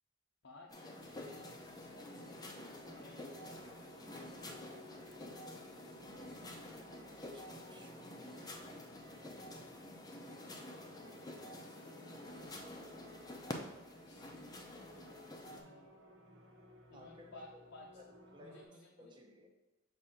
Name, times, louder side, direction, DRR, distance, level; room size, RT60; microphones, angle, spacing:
voice 1, 0.4-3.7 4.3-6.6 9.2-9.8 11.4-12.3 14.1-15.9 16.9-18.0 18.4-19.1, left 2 dB, 65° left, -3 dB, 0.7 m, -59 dB
sound 1, 0.7-15.6, left 1 dB, 20° left, 0.6 m, -49 dB
sound 2, 1.0-18.6, equal, 70° right, 1.0 m, -59 dB
voice 2, 7.3-7.9 16.9-17.6 17.9-18.0 18.3-19.5, left 1 dB, 25° right, 2 dB, 0.8 m, -58 dB
6.3 x 2.7 x 5.5 m, 1.0 s
head